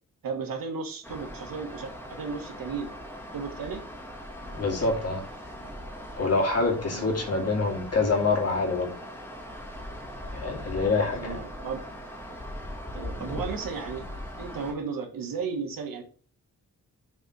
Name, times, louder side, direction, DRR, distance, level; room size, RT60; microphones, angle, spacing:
voice 1, 0.2-2.9 3.3-3.8 6.9-7.2 11.1-11.8 12.9-14.0 14.4-16.0, right 5 dB, 90° right, 5 dB, 1.6 m, -34 dB
sound 1, 1.0-14.7, equal, 5° left, 2.0 m, -40 dB
voice 2, 4.5-5.2 6.1-8.9 10.3-11.4, left 3 dB, 45° left, 0 dB, 2.6 m, -26 dB
7.3 x 4.1 x 4.7 m, 0.41 s
wide cardioid pair, 125°, 33 cm